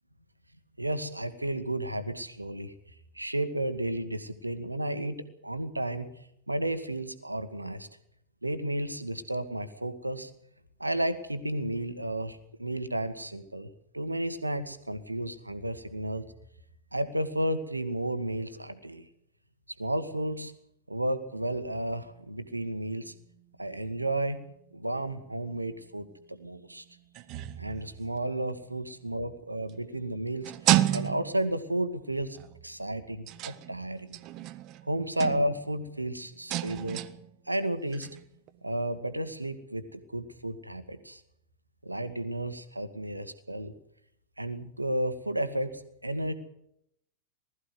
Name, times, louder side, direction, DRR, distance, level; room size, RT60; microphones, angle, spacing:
voice 1, 0.8-2.7 3.1-6.1 6.5-7.9 8.4-10.3 10.8-16.2 16.9-19.0 19.8-20.5 20.9-23.1 23.6-24.4 24.7-26.8 27.6-30.5 30.9-32.4 32.6-34.2 34.9-37.0 37.5-38.1 38.6-41.2 41.8-43.7 44.4-46.3, right 1 dB, 85° right, 10 dB, 1.6 m, -32 dB
sound 1, 21.5-28.6 29.7-31.8 32.3-32.8 33.3-35.8 36.2-38.6, right 14 dB, 40° right, 1.0 m, -34 dB
19.5 x 14.0 x 9.5 m, 0.76 s
figure-of-eight pair, 90°, 0 cm